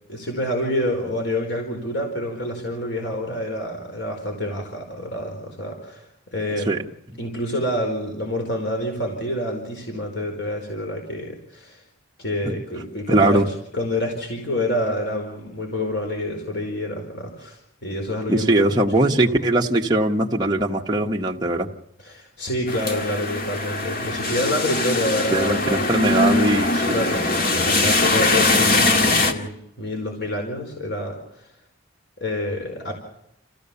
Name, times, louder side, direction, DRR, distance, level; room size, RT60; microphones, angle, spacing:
voice 1, 0.1-6.8 7.2-11.8 12.2-13.4 13.7-18.9 19.1-19.5 22.0-26.2 26.9-31.4 32.2-32.9, left 1 dB, 65° left, 2 dB, 4.7 m, -28 dB
voice 2, 13.1-13.5 18.3-21.7 25.3-27.0, right 1 dB, 20° right, 0 dB, 1.4 m, -20 dB
sound 1, 22.7-29.3, left 2 dB, 50° left, 2.0 m, -21 dB
28.5 x 15.5 x 7.0 m, 0.79 s
head